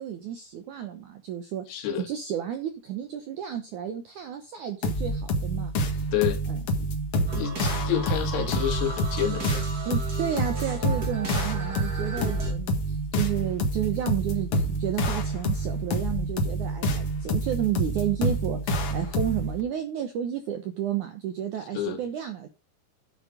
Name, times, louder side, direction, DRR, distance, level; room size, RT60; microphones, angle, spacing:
voice 1, 0.0-6.0 6.5-6.6 9.9-22.5, right 10 dB, 75° right, 1.8 m, -32 dB
voice 2, 1.7-2.1 6.1-6.4 6.8-6.9 7.3-9.7 21.7-22.0, left 10 dB, 75° left, 4.0 m, -29 dB
sound 1, 4.8-19.6, right 1 dB, 50° left, 1.8 m, -28 dB
sound 2, 7.3-12.5, right 1 dB, 25° right, 2.6 m, -36 dB
10.5 x 7.5 x 5.1 m
omnidirectional pair, 4.9 m